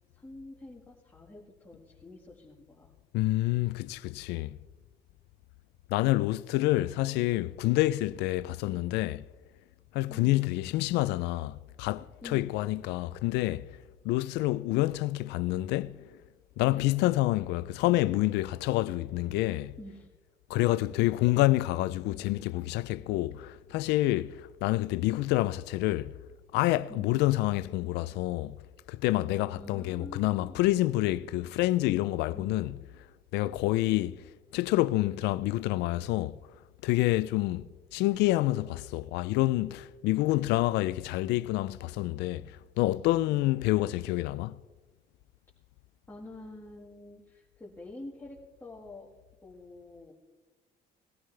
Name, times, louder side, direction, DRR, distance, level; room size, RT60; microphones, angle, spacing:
voice 1, 0.1-2.9 10.1-10.5 12.2-12.6 19.8-20.1 26.9-27.1 29.5-30.7 32.3-32.8 46.1-49.1 49.4-50.1, left 1 dB, 15° left, 1.7 m, -47 dB
voice 2, 3.1-4.6 5.9-9.2 9.9-13.7 14.0-16.0 16.6-19.7 20.5-26.1 26.5-28.6 28.9-32.7 33.3-34.2 34.5-36.4 36.8-44.6, left 17 dB, 90° left, 0.4 m, -28 dB
19.5 x 12.5 x 3.3 m
cardioid pair, 110°, 17 cm